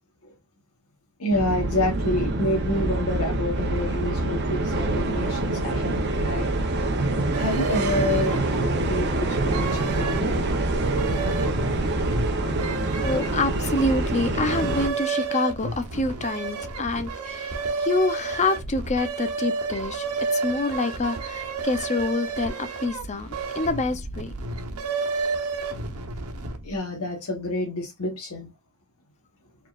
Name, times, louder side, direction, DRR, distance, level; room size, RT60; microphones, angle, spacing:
voice 1, 1.2-6.9 7.4-10.5 12.8-13.0 26.6-28.5, left 1 dB, 90° left, 1.1 m, -28 dB
sound 1, 1.3-14.9, right 2 dB, 50° right, 0.8 m, -25 dB
sound 2, 7.3-26.8, right 3 dB, 85° right, 1.0 m, -31 dB
voice 2, 13.0-20.0 20.3-24.3, left 2 dB, 30° left, 0.6 m, -27 dB
4.6 x 3.8 x 2.4 m
head